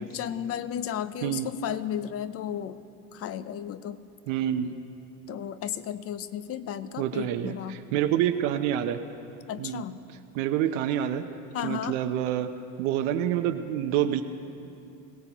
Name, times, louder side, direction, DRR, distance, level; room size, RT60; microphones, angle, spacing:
voice 1, 0.0-2.8 3.1-4.0 5.3-7.8 9.5-10.0 11.5-12.0, left 10 dB, 35° left, 14 dB, 0.6 m, -34 dB
voice 2, 4.3-4.7 7.0-9.0 9.6-9.8 10.3-11.2 11.6-12.5 12.8-14.2, right 11 dB, 80° right, 5 dB, 0.8 m, -27 dB
20.0 x 17.0 x 3.0 m, 2.7 s
supercardioid pair, 120°, 39 cm